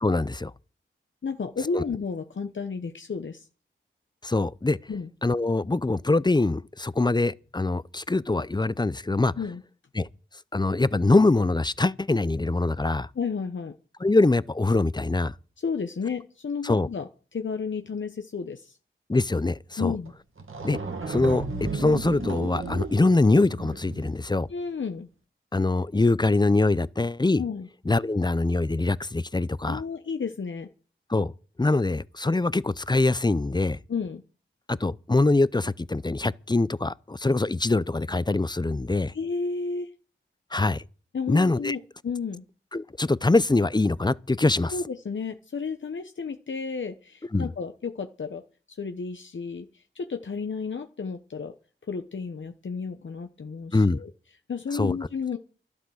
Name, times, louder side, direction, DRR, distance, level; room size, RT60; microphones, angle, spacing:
voice 1, 0.0-0.5 1.7-1.8 4.2-4.8 5.2-9.3 10.0-10.1 10.5-13.1 14.0-15.3 16.6-16.9 19.1-19.9 20.6-20.8 21.1-24.5 25.5-27.4 27.9-29.8 31.1-31.3 31.6-33.8 34.7-39.1 40.5-40.8 41.3-41.8 42.7-44.7 47.3-47.5 53.7-54.0 54.7-55.0, left 2 dB, 20° left, 0.6 m, -23 dB
voice 2, 1.2-3.5 4.9-5.1 9.4-9.6 13.1-13.8 15.6-18.8 19.8-20.1 24.5-25.1 27.4-27.7 29.7-30.7 33.9-34.2 39.1-39.9 41.1-42.4 44.7-51.5 51.9-54.1 54.5-55.4, left 5 dB, 65° left, 1.0 m, -32 dB
sound 1, 20.1-20.2 20.4-24.2, right 3 dB, 80° right, 2.2 m, -34 dB
12.0 x 12.0 x 6.4 m
cardioid pair, 55°, 21 cm